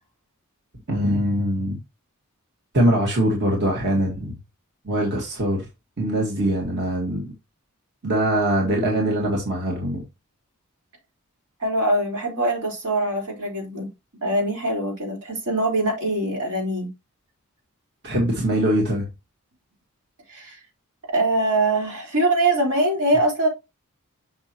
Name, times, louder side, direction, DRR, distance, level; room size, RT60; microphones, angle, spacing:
voice 1, 0.9-1.8 2.7-4.4 4.8-5.7 6.0-7.3 8.0-10.0 18.0-19.1, right 1 dB, 50° right, 1.8 m, -22 dB
voice 2, 11.6-13.9 14.2-16.9 20.3-20.6 21.1-23.5, right 1 dB, 85° right, 4.4 m, -23 dB
6.2 x 6.0 x 3.0 m
head